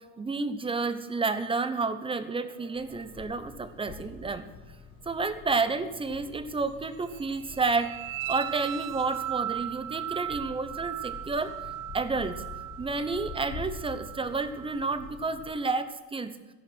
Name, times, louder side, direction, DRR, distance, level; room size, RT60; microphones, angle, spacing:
voice 1, 0.2-4.4 5.0-7.9 8.3-11.5 11.9-12.4 12.8-16.3, right 4 dB, 15° right, 11 dB, 1.0 m, -30 dB
sound 1, 2.8-15.5, left 4 dB, 30° left, 1.6 m, -47 dB
sound 2, 7.0-15.9, right 12 dB, 65° right, 0.9 m, -38 dB
13.0 x 11.0 x 6.1 m, 1.3 s
supercardioid pair, 130°, 41 cm